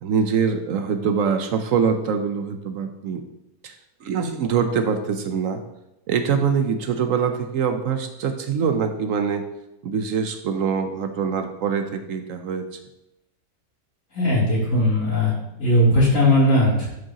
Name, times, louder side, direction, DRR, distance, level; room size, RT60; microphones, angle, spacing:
voice 1, 0.0-3.2 3.6-3.7 4.0-5.6 6.1-9.5 9.8-12.6, right 6 dB, 65° right, 7 dB, 0.8 m, -24 dB
voice 2, 14.1-15.3 15.6-16.9, left 1 dB, 50° left, -7 dB, 3.3 m, -18 dB
11.5 x 5.2 x 2.9 m, 0.90 s
omnidirectional pair, 1.9 m